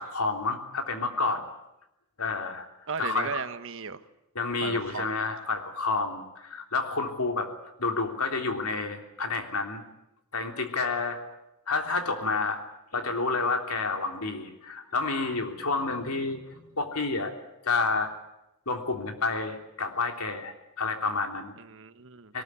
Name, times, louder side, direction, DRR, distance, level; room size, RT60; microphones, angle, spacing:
voice 1, 0.0-1.4 2.2-2.7 3.0-3.4 4.3-7.5 7.8-9.8 10.3-11.2 11.7-12.6 12.9-17.3 17.6-18.1 18.6-21.5 22.3-22.4, left 3 dB, 80° left, 4 dB, 3.4 m, -29 dB
voice 2, 2.9-4.0 4.6-5.1 21.6-22.3, right 5 dB, 65° right, 11 dB, 1.3 m, -36 dB
22.0 x 20.0 x 9.7 m, 0.87 s
head